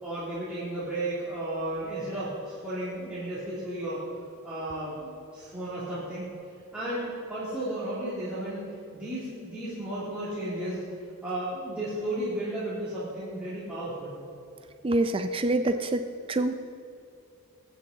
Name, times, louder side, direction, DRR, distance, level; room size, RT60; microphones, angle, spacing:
voice 1, 0.0-4.0 4.4-6.3 6.7-8.6 8.9-10.8 11.2-14.2, right 1 dB, 5° right, -12 dB, 2.8 m, -33 dB
voice 2, 14.8-16.5, right 2 dB, 25° right, 8 dB, 0.4 m, -26 dB
21.0 x 8.4 x 3.8 m, 2.6 s
head